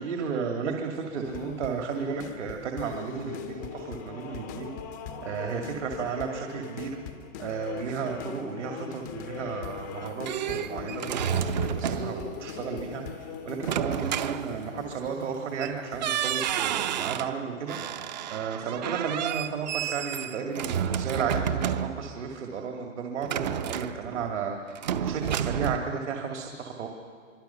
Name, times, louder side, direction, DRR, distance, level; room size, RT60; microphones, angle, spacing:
voice 1, 0.0-4.7 5.2-7.0 7.4-11.5 11.8-18.1 18.3-26.9, right 6 dB, 60° right, 2 dB, 2.4 m, -33 dB
sound 1, 1.2-16.5, left 7 dB, 15° left, 0.5 m, -40 dB
sound 2, 9.8-12.3 13.6-15.0 15.6-15.7 16.0-17.4 17.7-22.2 23.2-24.4 24.8-25.8, right 9 dB, 35° right, 0.7 m, -30 dB
24.5 x 24.5 x 5.8 m, 2.1 s
hypercardioid pair, 155°, 40 cm